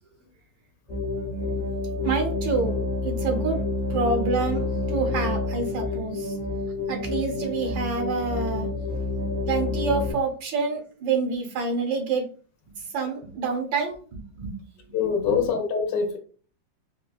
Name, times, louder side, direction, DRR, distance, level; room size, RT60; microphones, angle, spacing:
sound 1, 0.9-10.1, left 2 dB, 35° left, 0.7 m, -28 dB
voice 1, 2.0-2.8 3.0-3.6 3.9-6.4 6.9-8.7 9.5-12.2 12.8-14.5 14.9-15.0 15.2-15.5, right 4 dB, 80° right, 3 dB, 1.5 m, -27 dB
voice 2, 14.9-16.2, left 6 dB, 75° left, 5 dB, 1.1 m, -24 dB
4.4 x 2.2 x 2.3 m, 0.41 s
omnidirectional pair, 2.0 m